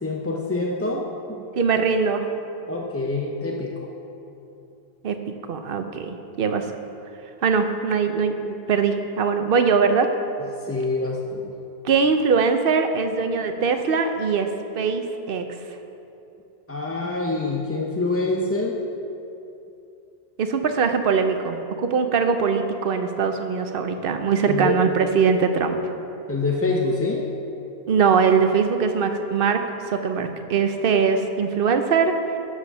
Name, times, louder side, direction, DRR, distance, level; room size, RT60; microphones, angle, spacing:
voice 1, 0.0-1.4 2.7-3.9 10.6-11.5 16.7-18.8 24.5-24.8 26.3-27.2, left 3 dB, 20° left, 0 dB, 0.5 m, -26 dB
voice 2, 1.6-2.2 5.0-6.6 7.4-10.1 11.8-14.5 14.8-15.4 20.4-25.8 27.9-29.6 29.9-32.1, right 5 dB, 60° right, 7 dB, 0.9 m, -21 dB
11.5 x 4.9 x 6.8 m, 2.8 s
omnidirectional pair, 1.1 m